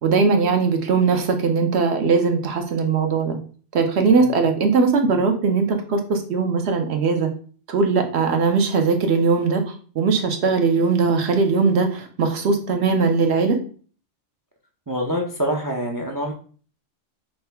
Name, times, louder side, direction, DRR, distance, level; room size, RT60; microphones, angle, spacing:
voice 1, 0.0-3.4 3.7-7.3 7.7-13.6, right 4 dB, 65° right, 5 dB, 1.0 m, -20 dB
voice 2, 14.9-16.3, equal, 30° right, 2 dB, 0.3 m, -26 dB
5.6 x 2.2 x 3.3 m, 0.41 s
omnidirectional pair, 1.2 m